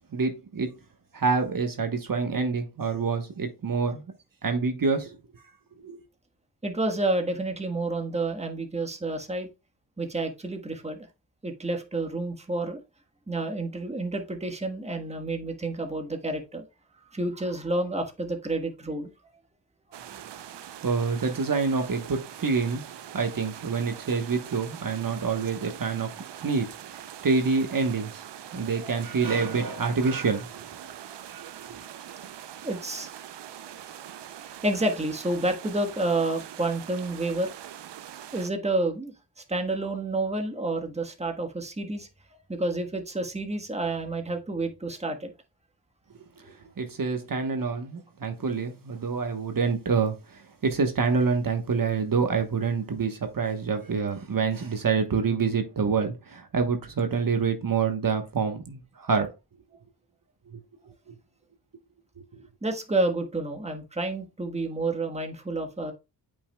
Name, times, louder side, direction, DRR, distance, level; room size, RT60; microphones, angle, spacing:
voice 1, 0.1-0.7 1.1-4.0 4.4-5.4 5.8-6.0 20.1-20.2 20.8-22.9 23.1-26.1 26.4-28.2 28.5-30.7 31.3-31.8 46.1-59.3 60.5-60.6 60.9-61.1 62.2-62.5, right 5 dB, 50° right, 1.2 m, -27 dB
voice 2, 6.6-9.5 10.0-11.1 11.4-12.8 13.3-16.6 17.1-19.1 28.5-29.0 30.8-31.2 32.6-33.1 34.4-37.5 38.3-39.1 39.5-42.1 42.5-45.3 46.4-46.5 62.6-65.9, right 2 dB, 15° right, 1.4 m, -29 dB
sound 1, 19.9-38.5, right 10 dB, 80° right, 0.7 m, -43 dB
8.4 x 5.5 x 2.3 m
cardioid pair, 60°, 42 cm